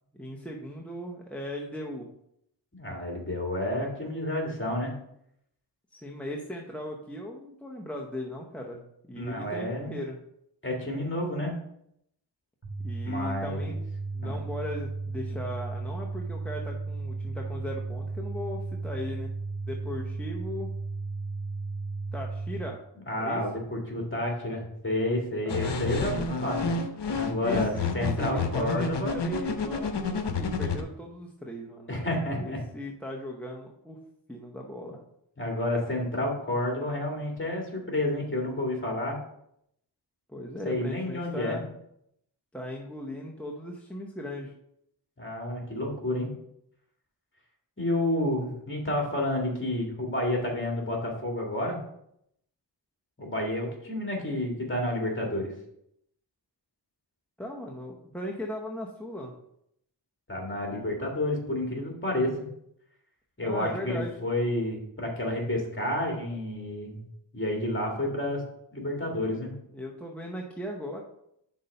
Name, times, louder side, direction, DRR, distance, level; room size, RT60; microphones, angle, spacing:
voice 1, 0.1-2.1 5.9-10.2 12.8-13.8 14.1-19.3 19.7-20.7 22.1-22.8 23.2-23.6 25.4-26.4 27.4-32.0 32.3-34.0 34.3-35.0 40.3-41.7 42.5-44.5 57.4-59.3 63.4-64.1 69.7-71.0, left 1 dB, 5° left, -2 dB, 0.8 m, -38 dB
voice 2, 2.7-4.9 9.2-9.9 10.6-11.5 13.0-13.8 14.2-14.4 23.1-26.7 27.1-29.2 31.9-32.6 35.4-39.2 40.6-41.6 45.2-46.3 47.8-51.8 53.2-55.5 60.3-62.5 63.4-67.1 67.3-68.4 68.7-69.5, left 1 dB, 25° left, 0 dB, 2.0 m, -30 dB
sound 1, 12.6-22.6, right 3 dB, 30° right, 2.4 m, -34 dB
sound 2, 25.5-30.8, left 4 dB, 65° left, 0.9 m, -29 dB
6.0 x 4.1 x 5.4 m, 0.75 s
wide cardioid pair, 75°, 44 cm